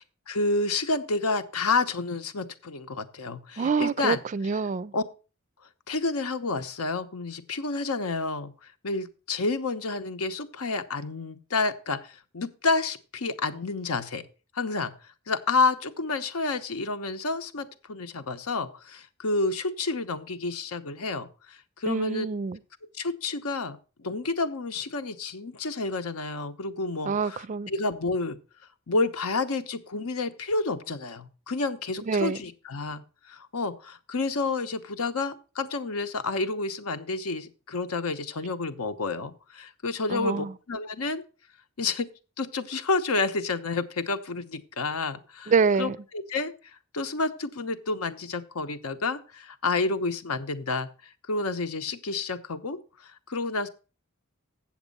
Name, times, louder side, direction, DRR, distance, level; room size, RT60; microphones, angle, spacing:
voice 1, 0.3-4.2 4.9-5.0 5.9-8.5 8.8-14.2 14.5-14.9 15.3-22.3 23.0-28.4 28.9-33.0 33.3-41.2 41.8-42.1 42.4-45.5 45.8-45.9 46.3-46.5 46.9-50.9 51.3-52.8 53.3-53.7, left 3 dB, 80° left, 0.9 m, -29 dB
voice 2, 3.6-4.9 21.9-22.6 27.0-27.7 32.1-32.4 40.1-40.5 45.5-46.0, right 5 dB, 35° right, 0.4 m, -26 dB
8.2 x 7.3 x 5.3 m
head